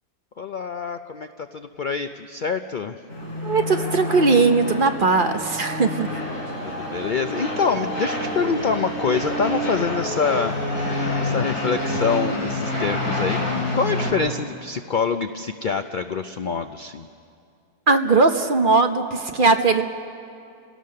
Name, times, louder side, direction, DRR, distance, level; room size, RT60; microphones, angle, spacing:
voice 1, 0.4-2.9 6.6-10.6 11.2-13.4 13.7-17.1, left 5 dB, 80° left, 8 dB, 0.4 m, -25 dB
sound 1, 3.1-14.1, left 1 dB, 60° left, 4.8 m, -27 dB
voice 2, 3.4-6.1 17.9-19.8, right 3 dB, 40° right, 6 dB, 0.9 m, -19 dB
29.0 x 17.5 x 6.6 m, 2.5 s
omnidirectional pair, 1.6 m